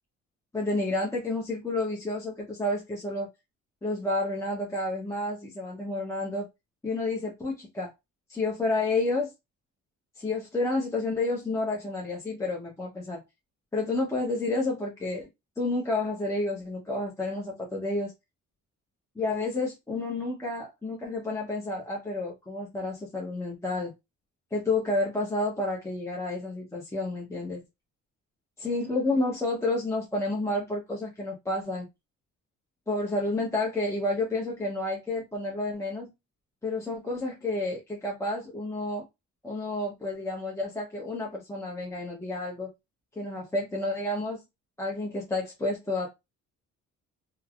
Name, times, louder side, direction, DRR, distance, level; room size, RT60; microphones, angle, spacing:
voice 1, 0.5-3.3 3.8-6.5 6.8-7.9 8.3-9.3 10.2-13.2 13.7-15.3 15.6-18.1 19.2-23.9 24.5-27.6 28.6-31.9 32.9-36.1 36.6-39.0 39.4-42.7 43.2-44.4 44.8-46.1, left 2 dB, 10° left, 0.7 m, -30 dB
3.2 x 2.0 x 2.3 m
cardioid pair, 90°, 30 cm